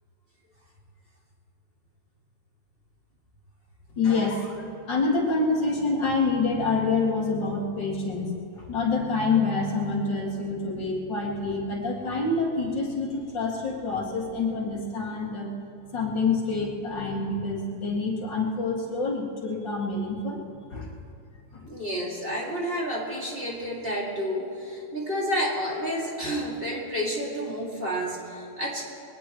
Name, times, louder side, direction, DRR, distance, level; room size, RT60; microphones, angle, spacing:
voice 1, 3.9-15.5 15.9-20.4 20.7-20.9 21.5-21.7, left 3 dB, 80° left, -2 dB, 3.0 m, -27 dB
voice 2, 21.6-28.8, equal, 30° right, -4 dB, 2.7 m, -30 dB
22.0 x 18.5 x 3.1 m, 2.5 s
omnidirectional pair, 2.0 m